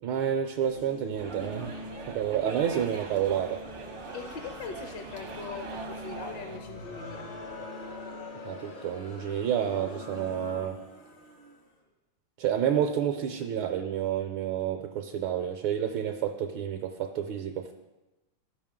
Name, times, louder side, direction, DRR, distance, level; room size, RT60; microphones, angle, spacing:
voice 1, 0.0-1.7 2.1-3.6 8.4-10.8 12.4-17.7, right 9 dB, 75° right, 4 dB, 1.3 m, -29 dB
sound 1, 0.7-10.7, left 2 dB, 85° left, 0.6 m, -45 dB
sound 2, 1.2-6.6, right 4 dB, 50° right, 0.6 m, -42 dB
voice 2, 4.1-7.3, left 5 dB, 70° left, 5 dB, 1.2 m, -41 dB
Crowd, 6.6-11.7, left 2 dB, 45° left, 0.6 m, -45 dB
14.0 x 5.2 x 3.6 m, 1.1 s
omnidirectional pair, 2.4 m